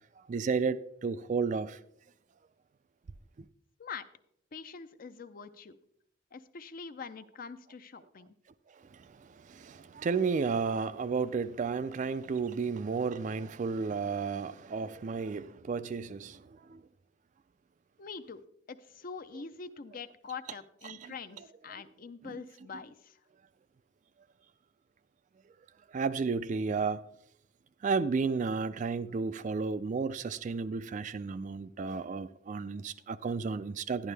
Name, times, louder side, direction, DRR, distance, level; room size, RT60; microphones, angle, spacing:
voice 1, 0.3-1.8 9.5-16.4 16.7-16.8 20.8-21.1 22.3-22.4 25.9-27.0 27.8-34.1, right 5 dB, 40° right, 0.3 m, -32 dB
voice 2, 4.5-5.8 6.3-8.3 18.0-18.4 18.7-23.2, left 5 dB, 45° left, 0.5 m, -44 dB
11.5 x 11.0 x 3.3 m
head